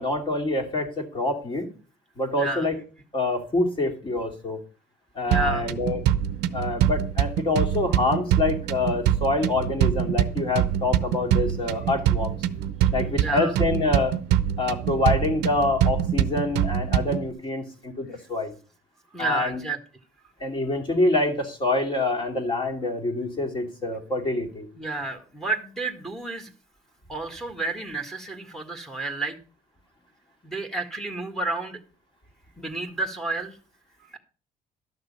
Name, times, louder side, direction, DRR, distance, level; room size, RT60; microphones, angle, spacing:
voice 1, 0.0-1.7 2.2-2.8 3.1-4.6 5.1-6.0 6.5-12.4 12.9-14.2 14.6-18.5 19.2-19.6 20.4-24.7, left 2 dB, 30° left, 2 dB, 2.7 m, -26 dB
voice 2, 5.3-5.7 13.2-13.5 19.1-19.8 24.8-26.5 27.1-29.4 30.4-31.8 32.6-33.6, right 3 dB, ahead, 5 dB, 1.8 m, -30 dB
sound 1, 5.3-17.3, right 11 dB, 90° right, 0.7 m, -25 dB
12.5 x 6.6 x 5.5 m, 0.38 s
cardioid pair, 110°, 17 cm